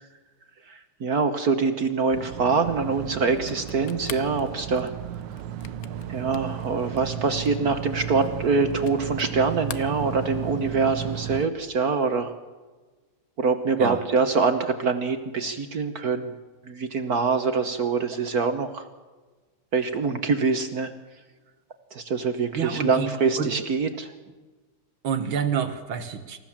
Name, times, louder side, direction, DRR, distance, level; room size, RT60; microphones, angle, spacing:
voice 1, 0.7-4.9 6.1-12.3 13.4-16.3 16.7-18.9 19.7-20.9 21.9-24.1, right 4 dB, 50° right, 8 dB, 1.6 m, -24 dB
sound 1, 2.1-11.5, right 9 dB, 70° right, 1.4 m, -34 dB
sound 2, 3.4-9.4 9.6-10.6, left 9 dB, 55° left, 1.2 m, -43 dB
voice 2, 22.5-23.1 23.4-23.5 25.0-26.4, right 7 dB, 90° right, 6 dB, 2.2 m, -28 dB
27.5 x 15.0 x 7.4 m, 1.3 s
omnidirectional pair, 2.2 m